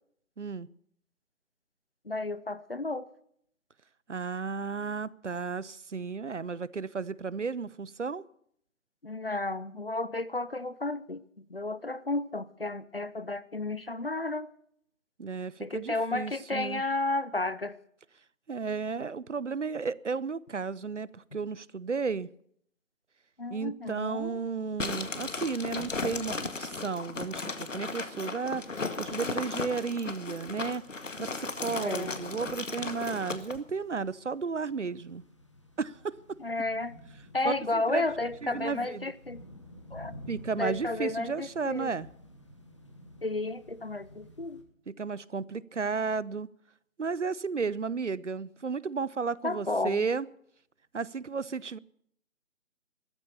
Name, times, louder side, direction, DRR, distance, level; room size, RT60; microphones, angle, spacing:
voice 1, 0.4-0.7 4.1-8.2 15.2-16.8 18.5-22.3 23.5-30.8 31.2-35.2 35.8-36.4 37.4-38.1 38.4-39.1 40.3-42.1 44.9-46.5 47.0-50.3 50.9-51.8, right 5 dB, 65° right, 21 dB, 0.7 m, -33 dB
voice 2, 2.0-3.1 9.0-11.2 11.5-14.5 15.6-17.8 23.4-24.4 31.8-32.2 36.4-37.0 37.3-39.4 39.9-40.1 40.6-41.9 43.2-44.6 49.4-50.0, left 2 dB, 45° left, 17 dB, 0.7 m, -32 dB
sound 1, 24.8-33.6, left 3 dB, 65° left, 1.9 m, -36 dB
sound 2, 30.5-44.6, left 1 dB, 20° left, 1.4 m, -52 dB
14.0 x 14.0 x 6.8 m, 0.68 s
figure-of-eight pair, 175°, 40 cm